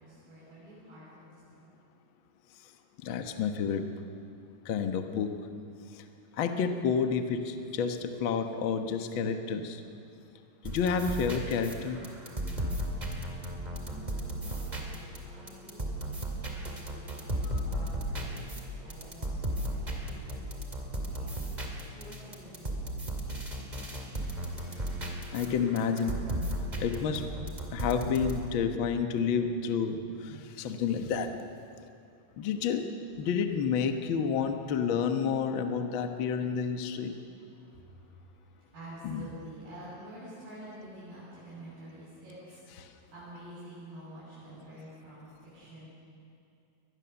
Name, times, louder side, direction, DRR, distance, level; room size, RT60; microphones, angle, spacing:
voice 1, 0.0-1.6 13.7-17.0 17.7-18.6 18.8-22.8 37.5-45.9, right 1 dB, 75° right, -12 dB, 9.3 m, -49 dB
voice 2, 3.0-3.8 4.6-5.3 6.4-9.8 10.7-12.0 25.3-26.2 26.8-27.5 27.7-31.3 32.4-32.9 33.2-37.2 39.0-39.2, left 6 dB, 75° left, 6 dB, 1.1 m, -30 dB
sound 1, 10.6-28.4, right 1 dB, 15° right, 1.7 m, -36 dB
23.5 x 20.0 x 7.1 m, 2.5 s
omnidirectional pair, 4.2 m